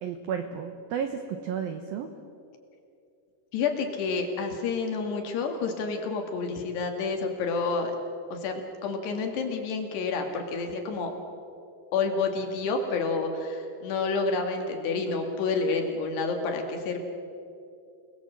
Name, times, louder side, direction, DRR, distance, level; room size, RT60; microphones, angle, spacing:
voice 1, 0.0-2.1, right 7 dB, 80° right, 7 dB, 2.1 m, -32 dB
voice 2, 3.5-8.0 8.3-11.1 11.9-17.0, left 4 dB, 60° left, 3 dB, 3.8 m, -29 dB
29.0 x 19.5 x 7.7 m, 2.6 s
omnidirectional pair, 5.8 m